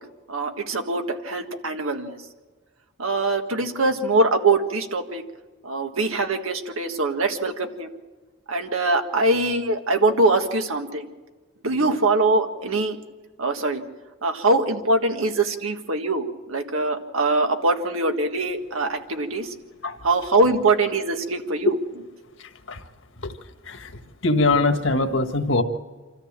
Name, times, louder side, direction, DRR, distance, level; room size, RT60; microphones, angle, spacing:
voice 1, 0.3-2.2 3.0-5.2 5.6-8.0 8.5-11.1 11.6-13.0 13.4-13.8 14.2-19.5 20.0-21.8, right 2 dB, 85° right, 6 dB, 1.7 m, -23 dB
voice 2, 24.2-25.6, left 2 dB, 65° left, 7 dB, 1.5 m, -21 dB
26.5 x 14.0 x 7.4 m, 1.3 s
head